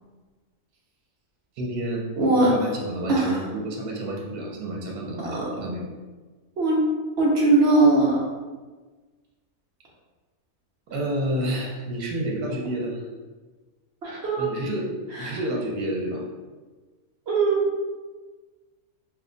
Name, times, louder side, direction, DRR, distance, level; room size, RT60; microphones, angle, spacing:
voice 1, 1.6-2.0 2.4-5.9 10.9-13.1 14.4-14.9 15.2-16.2, right 1 dB, 80° right, -1 dB, 1.2 m, -29 dB
voice 2, 2.2-2.5 3.1-3.4 5.2-5.4 6.6-6.8 7.2-8.2 14.0-14.5 15.2-15.4 17.3-17.6, right 2 dB, 55° right, -4 dB, 0.8 m, -20 dB
3.1 x 2.3 x 3.7 m, 1.3 s
omnidirectional pair, 1.5 m